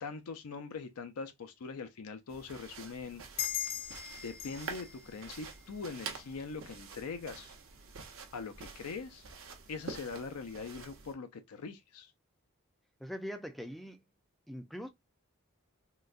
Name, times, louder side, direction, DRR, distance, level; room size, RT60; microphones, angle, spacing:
voice 1, 0.0-3.2 4.2-7.5 8.3-9.3 9.7-12.1, left 4 dB, 85° left, 0.5 m, -42 dB
sound 1, 2.3-11.1, right 5 dB, 60° right, 0.7 m, -47 dB
sound 2, 3.4-6.5, left 10 dB, 40° left, 0.6 m, -40 dB
voice 2, 13.0-14.0 14.5-14.9, equal, ahead, 0.3 m, -42 dB
3.8 x 2.2 x 2.4 m
head